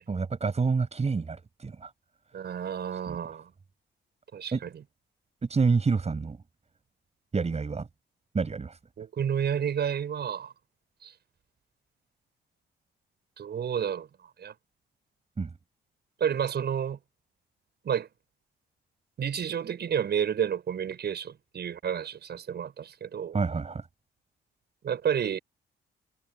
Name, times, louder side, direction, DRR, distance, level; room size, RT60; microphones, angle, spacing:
voice 1, 0.1-1.9 2.9-3.2 4.5-4.6 5.5-6.4 7.3-7.9 8.3-8.8 15.4-15.5 23.3-23.9, right 4 dB, 35° right, 7.1 m, -28 dB
voice 2, 2.3-3.5 4.3-4.7 9.0-10.5 11.0-11.1 13.4-14.1 14.4-14.5 16.2-17.0 17.8-18.1 19.2-23.4 24.8-25.4, right 8 dB, 55° right, 6.5 m, -30 dB
cardioid pair, 90°, 20 cm